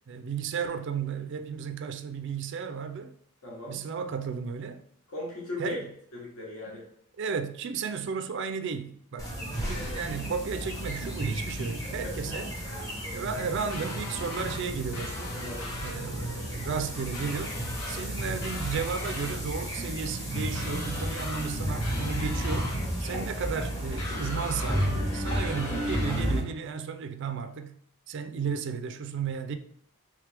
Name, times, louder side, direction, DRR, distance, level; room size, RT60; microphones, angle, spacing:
voice 1, 0.1-3.1 3.7-4.8 5.6-5.8 7.2-9.3 9.7-12.5 13.1-15.4 15.7-17.6 17.9-22.7 23.0-24.8 25.1-27.8 28.1-29.6, right 6 dB, 55° right, 0.3 m, -34 dB
voice 2, 3.4-3.8 5.1-5.8 6.1-6.8 9.7-10.0 12.0-12.1 15.3-15.7 23.0-23.3, left 2 dB, 65° left, 1.1 m, -38 dB
sound 1, 9.2-26.4, equal, 15° left, 0.8 m, -33 dB
sound 2, 13.7-14.6 14.9-16.0 17.1-18.1 18.4-19.4 20.5-21.5 21.8-22.8 24.0-24.9 25.3-26.2, left 2 dB, 85° left, 0.8 m, -40 dB
3.3 x 3.2 x 3.3 m
head